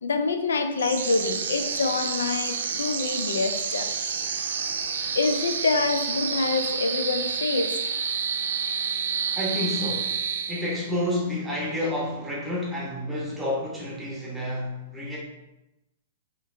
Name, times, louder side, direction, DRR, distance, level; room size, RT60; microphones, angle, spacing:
voice 1, 0.0-3.9 5.1-7.8, left 4 dB, 85° left, 7 dB, 0.5 m, -26 dB
sound 1, 0.8-11.0, right 6 dB, 75° right, 0.5 m, -29 dB
voice 2, 9.3-10.1 10.5-15.2, left 1 dB, 10° right, -4 dB, 1.0 m, -29 dB
4.9 x 2.9 x 2.6 m, 0.96 s
hypercardioid pair, 130°, 0 cm